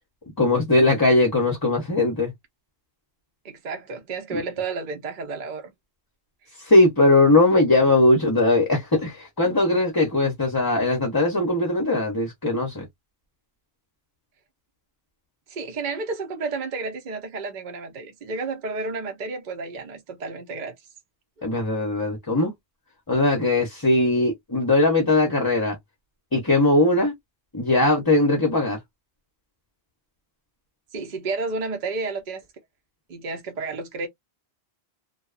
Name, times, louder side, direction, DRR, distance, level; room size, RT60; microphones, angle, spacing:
voice 1, 0.4-2.3 4.3-4.4 6.6-12.9 21.4-22.5 23.1-25.8 26.3-27.1 27.5-28.8, left 2 dB, 25° left, 0.6 m, -20 dB
voice 2, 3.4-5.7 15.5-20.7 30.9-32.4 33.1-34.1, right 3 dB, 50° right, 0.8 m, -31 dB
2.7 x 2.2 x 2.4 m
omnidirectional pair, 1.1 m